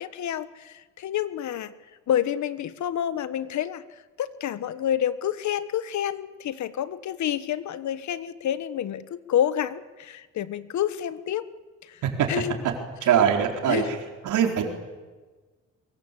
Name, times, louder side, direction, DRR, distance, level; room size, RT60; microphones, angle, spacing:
voice 1, 0.0-1.7 2.1-11.5 11.8-12.0 12.3-12.6 13.7-14.0, left 10 dB, 70° left, 14 dB, 1.4 m, -28 dB
voice 2, 13.0-14.0 14.2-14.6, right 8 dB, 80° right, 3 dB, 4.4 m, -22 dB
24.0 x 22.5 x 8.5 m, 1.3 s
cardioid pair, 90°, 30 cm